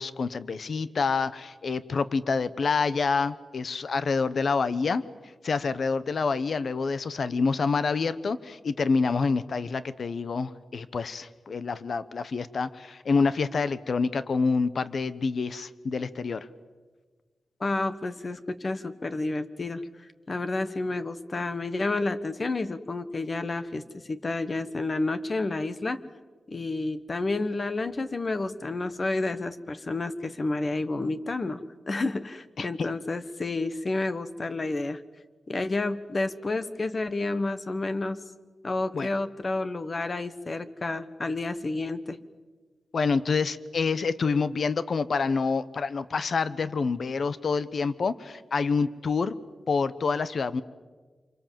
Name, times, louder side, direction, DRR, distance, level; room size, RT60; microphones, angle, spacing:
voice 1, 0.0-5.0 5.4-16.5 32.6-32.9 38.9-39.1 42.9-49.3 49.7-50.6, left 4 dB, 65° left, 15 dB, 1.0 m, -27 dB
voice 2, 17.6-19.8 20.3-26.0 26.5-35.0 35.5-38.2 38.6-42.2, left 2 dB, 40° left, 12 dB, 1.4 m, -30 dB
28.0 x 24.0 x 7.6 m, 1.4 s
wide cardioid pair, 100°, 0 cm